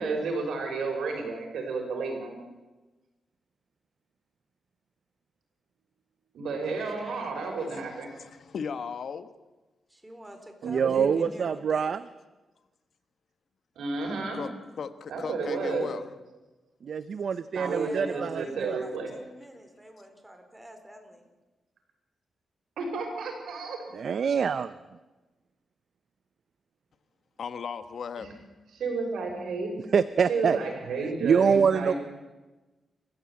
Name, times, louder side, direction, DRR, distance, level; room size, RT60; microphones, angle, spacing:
voice 1, 0.0-2.4 6.3-8.1 10.6-11.3 13.8-14.4 15.1-15.9 17.5-19.1 22.8-23.8 28.2-28.4 28.7-29.9 30.2-32.0, right 4 dB, 90° right, 6.1 m, -32 dB
voice 2, 6.6-9.3 14.3-14.5 14.8-16.1 27.4-28.3, left 6 dB, 65° left, 1.4 m, -37 dB
voice 3, 9.9-12.0 17.5-21.3, right 1 dB, 10° right, 4.1 m, -46 dB
voice 4, 10.6-12.0 16.8-18.8 23.9-24.8 29.9-30.6 31.0-31.9, right 6 dB, 60° right, 0.7 m, -25 dB
29.0 x 15.0 x 8.7 m
cardioid pair, 105°, 0 cm